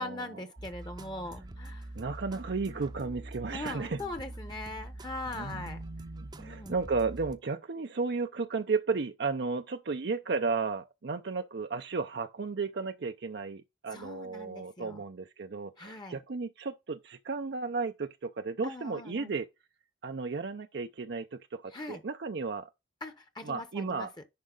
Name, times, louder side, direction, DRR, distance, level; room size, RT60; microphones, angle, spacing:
voice 1, 0.0-1.9 3.5-5.8 6.4-6.7 13.9-15.0 15.8-16.2 18.6-19.3 21.7-22.0 23.0-24.1, left 2 dB, 25° left, 1.0 m, -41 dB
sound 1, 0.6-7.4, right 1 dB, 25° right, 0.7 m, -44 dB
voice 2, 2.0-4.0 5.3-19.5 20.0-22.7 23.4-24.1, right 4 dB, 65° right, 0.6 m, -34 dB
10.5 x 4.8 x 3.9 m
head